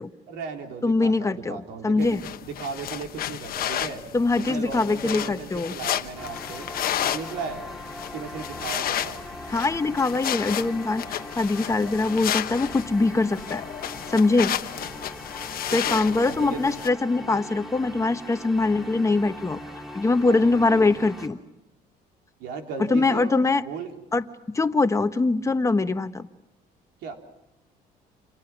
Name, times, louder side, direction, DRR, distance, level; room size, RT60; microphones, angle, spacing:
voice 1, 0.3-2.2 2.5-4.0 4.4-6.6 7.0-7.7 8.1-9.2 15.7-16.8 17.1-17.2 20.3-20.9 22.4-23.3 23.6-23.9 27.0-27.1, right 5 dB, 90° right, 3 dB, 3.6 m, -36 dB
voice 2, 0.8-1.6 1.8-2.2 4.1-5.7 9.5-13.6 14.1-14.5 15.7-19.6 19.9-21.4 22.9-23.6 24.1-24.2 24.5-26.3, left 3 dB, 20° left, 9 dB, 1.2 m, -23 dB
sound 1, 2.0-16.9, left 11 dB, 60° left, 1.2 m, -32 dB
sound 2, 6.2-21.3, left 1 dB, ahead, 3.2 m, -40 dB
29.0 x 27.5 x 6.0 m, 0.92 s
cardioid pair, 110°, 17 cm